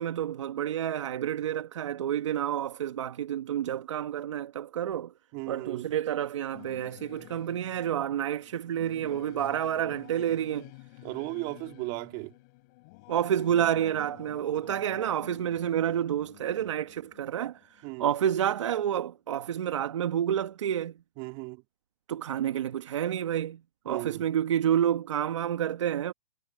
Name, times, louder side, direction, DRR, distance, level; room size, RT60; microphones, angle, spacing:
voice 1, 0.0-5.1 5.5-10.7 13.1-21.0 22.1-26.1, right 10 dB, 65° right, 1.4 m, -29 dB
voice 2, 5.3-5.9 11.0-12.3 17.8-18.1 21.2-21.6 23.9-24.2, right 27 dB, 30° right, 2.9 m, -36 dB
Singing / Musical instrument, 6.5-18.4, left 26 dB, 35° left, 6.3 m, -51 dB
hypercardioid pair, 155°, 17 cm